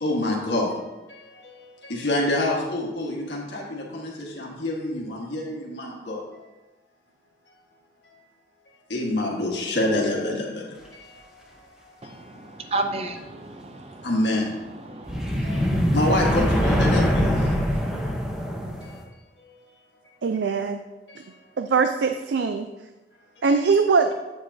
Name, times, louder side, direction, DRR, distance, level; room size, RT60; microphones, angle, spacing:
voice 1, 0.0-6.2 8.9-11.1 12.0-12.1 13.3-13.4 14.0-14.7 15.4-17.4, left 1 dB, 80° left, -2 dB, 1.6 m, -27 dB
voice 2, 12.0-14.1 14.9-16.0, right 2 dB, 35° right, 7 dB, 0.6 m, -33 dB
sound 1, 15.1-19.0, equal, 5° right, 0.8 m, -23 dB
voice 3, 20.2-20.8 21.6-22.7 23.4-24.1, right 5 dB, 80° right, 7 dB, 0.4 m, -21 dB
8.7 x 8.0 x 2.8 m, 1.1 s
head